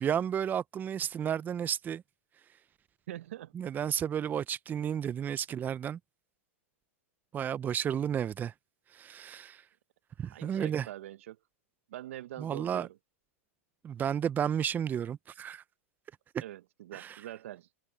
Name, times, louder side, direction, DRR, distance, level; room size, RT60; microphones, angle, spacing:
voice 1, 0.0-2.0 3.5-6.0 7.3-8.5 8.9-9.6 10.2-10.9 12.4-12.9 13.8-15.6 16.9-17.1, right 9 dB, 25° right, 0.7 m, -32 dB
voice 2, 3.1-3.7 10.2-11.4 11.9-13.0 16.4-17.7, right 13 dB, 70° right, 1.0 m, -44 dB
hypercardioid pair, 105°, 8 cm